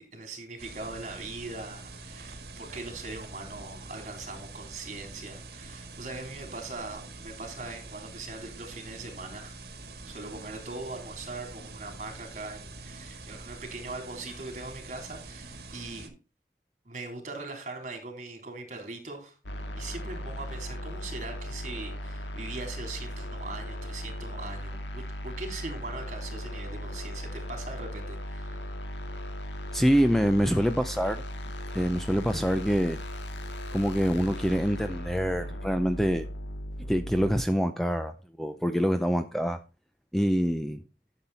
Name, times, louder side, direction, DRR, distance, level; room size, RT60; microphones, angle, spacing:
voice 1, 0.0-9.6 10.1-16.2 16.9-19.4 19.8-28.7, right 3 dB, 45° right, 3.5 m, -41 dB
sound 1, 0.6-16.1, right 3 dB, 60° right, 1.9 m, -45 dB
sound 2, 19.4-37.5, equal, 85° left, 1.8 m, -37 dB
voice 2, 29.7-31.2 31.7-33.0 33.7-36.3 36.9-39.6 40.1-40.8, equal, ahead, 0.5 m, -25 dB
12.0 x 7.3 x 4.1 m
head